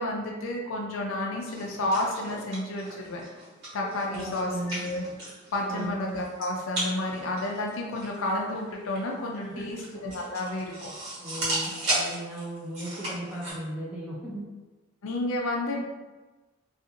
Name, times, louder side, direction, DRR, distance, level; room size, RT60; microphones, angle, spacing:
voice 1, 0.0-3.2 3.7-5.0 5.5-10.9 15.0-15.8, left 1 dB, 80° left, -1 dB, 0.4 m, -31 dB
sound 1, 1.4-13.5, right 1 dB, 60° right, 1.3 m, -36 dB
voice 2, 3.8-4.8 5.6-5.9 9.4-9.8 11.2-14.4, right 1 dB, 5° right, -6 dB, 0.5 m, -37 dB
2.5 x 2.4 x 2.7 m, 1.2 s
head